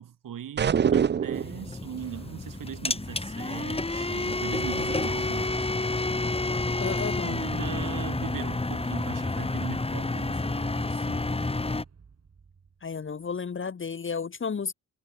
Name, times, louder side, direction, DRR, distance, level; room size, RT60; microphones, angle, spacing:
voice 1, 0.0-5.7 7.2-11.2, right 9 dB, 85° right, 2.0 m, -39 dB
sound 1, 0.6-1.6, right 7 dB, 35° right, 0.4 m, -23 dB
sound 2, 1.3-11.8, left 2 dB, 20° left, 2.0 m, -29 dB
sound 3, 2.0-13.3, right 5 dB, 50° right, 6.8 m, -50 dB
voice 2, 6.8-7.4 12.8-14.7, left 5 dB, 40° left, 1.1 m, -32 dB
wide cardioid pair, 115°, 32 cm